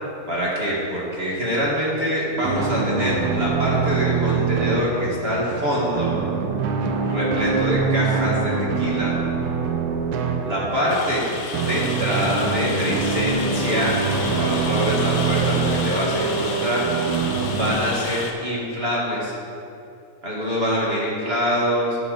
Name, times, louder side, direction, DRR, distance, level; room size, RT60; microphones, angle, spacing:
voice 1, 0.3-6.1 7.0-9.1 10.4-11.2 11.7-13.9 14.3-16.8 17.5-19.3 20.2-22.0, equal, 30° right, -5 dB, 1.2 m, -24 dB
sound 1, 2.4-17.7, right 5 dB, 80° right, 2.1 m, -24 dB
Rain, 10.9-18.3, left 4 dB, 70° left, 2.1 m, -31 dB
10.5 x 8.4 x 3.9 m, 2.6 s
omnidirectional pair, 3.5 m